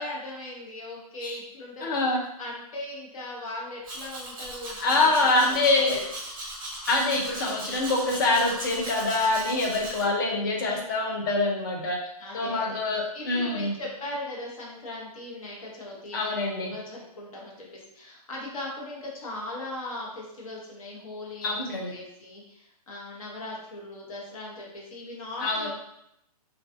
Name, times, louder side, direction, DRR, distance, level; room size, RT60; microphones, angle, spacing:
voice 1, 0.0-5.6 7.4-7.8 8.6-8.9 12.2-21.6 21.9-25.7, left 1 dB, 60° left, -3 dB, 1.0 m, -39 dB
voice 2, 1.8-2.2 4.8-6.0 6.9-12.0 12.3-13.7 16.1-16.8 21.4-21.9 25.4-25.7, left 2 dB, 35° left, 0 dB, 0.4 m, -25 dB
Domestic sounds home sounds, 3.8-10.0, right 1 dB, 35° right, 0.6 m, -38 dB
2.3 x 2.3 x 2.4 m, 0.80 s
hypercardioid pair, 170°, 20 cm